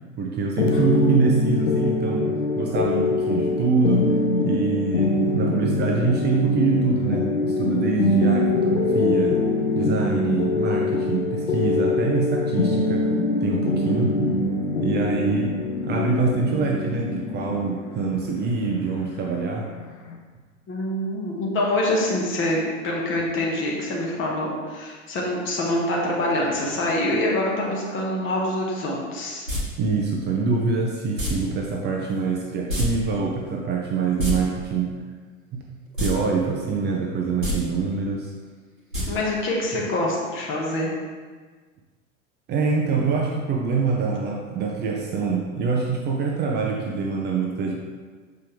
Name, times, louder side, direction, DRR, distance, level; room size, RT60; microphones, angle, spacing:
voice 1, 0.2-4.2 4.4-9.4 9.7-14.2 14.8-19.7 29.8-34.9 35.5-35.6 36.0-38.3 42.5-47.7, right 4 dB, 25° right, 0 dB, 0.7 m, -25 dB
sound 1, 0.6-20.2, left 3 dB, 70° left, 0.9 m, -24 dB
voice 2, 20.7-29.5 39.1-40.9, left 1 dB, 30° left, -3 dB, 1.7 m, -25 dB
sound 2, 29.5-29.6 31.2-31.3 32.7-32.9 33.1-33.2 34.0-34.3 35.9-36.1 36.5-36.6 37.3-37.5 38.9-39.0 39.4-39.5, left 2 dB, 90° right, 1.5 m, -25 dB
6.7 x 5.1 x 3.4 m, 1.5 s
figure-of-eight pair, 80°, 39 cm